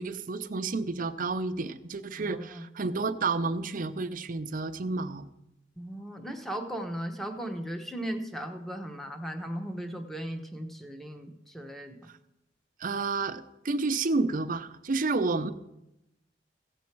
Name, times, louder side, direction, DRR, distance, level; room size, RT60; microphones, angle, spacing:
voice 1, 0.0-5.3 12.8-15.5, right 3 dB, 50° right, 9 dB, 0.6 m, -30 dB
voice 2, 2.2-2.7 5.8-12.0, right 1 dB, ahead, 4 dB, 1.0 m, -37 dB
16.0 x 7.2 x 4.5 m, 0.87 s
head